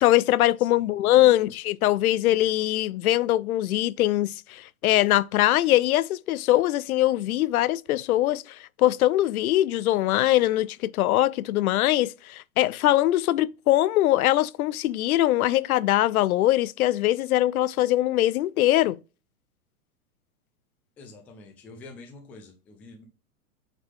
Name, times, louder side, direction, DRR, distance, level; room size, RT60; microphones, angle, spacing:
voice 1, 0.0-19.0, left 15 dB, 70° left, 0.5 m, -22 dB
voice 2, 0.6-1.5 21.0-23.0, left 3 dB, 5° left, 0.3 m, -47 dB
8.0 x 3.7 x 3.6 m
hypercardioid pair, 125°, 46 cm